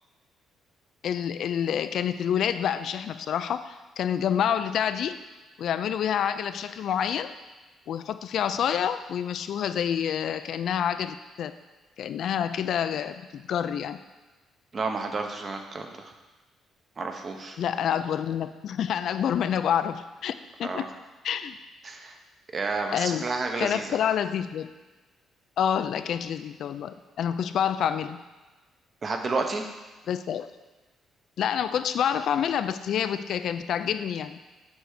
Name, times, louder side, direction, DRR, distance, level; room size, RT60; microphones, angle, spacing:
voice 1, 1.0-5.2 5.6-7.3 7.9-11.6 12.0-14.0 17.6-20.9 21.2-21.6 22.9-23.3 23.6-24.7 25.6-28.2 30.1-30.5 31.4-34.4, left 9 dB, 65° left, 11 dB, 0.3 m, -28 dB
voice 2, 14.7-16.1 17.0-17.6 20.6-20.9 21.8-22.2 22.5-24.0 29.0-29.7, right 3 dB, 35° right, 4 dB, 0.8 m, -31 dB
7.9 x 3.4 x 6.4 m, 1.2 s
cardioid pair, 140°, 0 cm